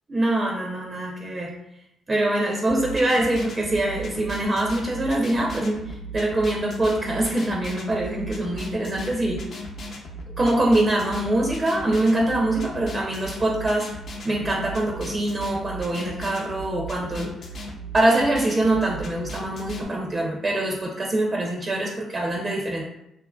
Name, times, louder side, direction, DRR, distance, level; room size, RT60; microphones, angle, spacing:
voice 1, 0.1-1.5 2.1-9.4 10.4-13.9 14.2-17.3 17.9-22.8, right 1 dB, 30° right, -1 dB, 0.4 m, -24 dB
sound 1, 2.7-19.8, right 1 dB, 55° left, 0.4 m, -37 dB
2.7 x 2.4 x 2.2 m, 0.82 s
cardioid pair, 90°, 0 cm